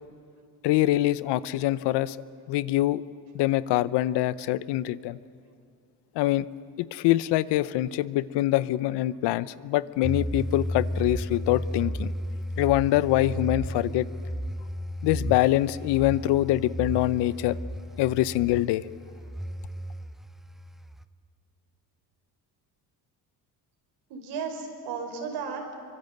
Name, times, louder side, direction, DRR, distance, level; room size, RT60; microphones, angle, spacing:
voice 1, 0.6-2.2 2.5-3.0 3.3-5.2 6.2-6.5 6.8-12.1 12.6-14.1 15.0-17.6 18.0-18.9, left 15 dB, 80° left, 17 dB, 0.8 m, -24 dB
sound 1, 10.0-21.0, equal, ahead, 0.5 m, -34 dB
voice 2, 24.1-25.7, right 5 dB, 80° right, 4 dB, 4.9 m, -35 dB
24.5 x 24.5 x 8.0 m, 2.4 s
cardioid pair, 140°, 40 cm